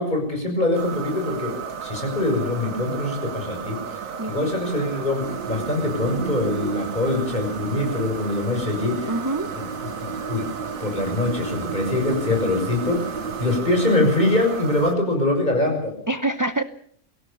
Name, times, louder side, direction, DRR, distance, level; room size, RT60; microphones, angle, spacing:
voice 1, 0.0-9.2 9.6-9.7 10.0-10.5 10.8-15.9, left 2 dB, 35° left, 2 dB, 6.6 m, -24 dB
sound 1, 0.7-15.0, right 6 dB, 85° right, 1.7 m, -34 dB
voice 2, 4.2-4.5 9.1-9.5 16.1-16.6, right 2 dB, 20° right, 11 dB, 0.6 m, -25 dB
sound 2, 5.2-13.6, right 5 dB, 40° right, 1.8 m, -34 dB
23.0 x 17.0 x 7.1 m, 0.63 s
omnidirectional pair, 1.4 m